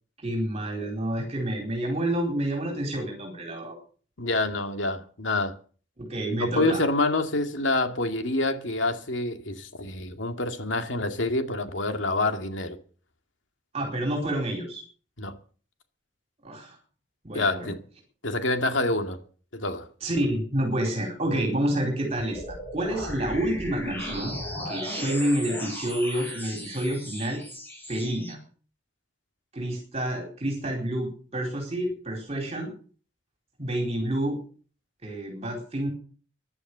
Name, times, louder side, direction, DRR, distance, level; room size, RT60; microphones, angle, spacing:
voice 1, 0.2-3.7 6.0-6.8 13.7-14.8 16.4-16.8 17.2-17.7 20.0-24.4 24.7-27.4 27.9-28.4 29.5-32.7 33.6-34.4 35.0-35.9, right 1 dB, 35° right, 4.3 m, -29 dB
voice 2, 4.2-5.5 6.4-12.8 15.2-15.3 17.3-17.8 18.2-19.2 19.5-19.9, left 2 dB, 90° left, 2.2 m, -27 dB
sound 1, 22.3-28.3, equal, 10° left, 5.9 m, -36 dB
15.5 x 11.0 x 6.8 m
head